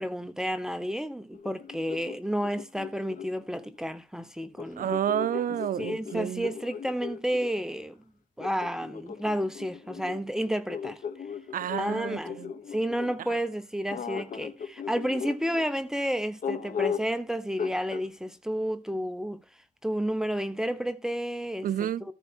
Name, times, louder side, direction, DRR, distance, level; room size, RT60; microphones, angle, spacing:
voice 1, 0.0-4.9 5.8-8.0 8.4-11.0 11.8-12.4 12.7-19.4 19.8-21.7 22.1-22.2, equal, 5° right, 0.9 m, -31 dB
sound 1, 1.3-3.7 4.6-7.5 8.4-13.2 13.9-15.7 16.4-17.2 17.6-18.1, left 7 dB, 75° left, 1.1 m, -37 dB
voice 2, 4.8-6.5 11.5-12.5 21.6-22.1, right 10 dB, 80° right, 0.4 m, -30 dB
14.0 x 4.9 x 4.5 m
cardioid pair, 80°, 14 cm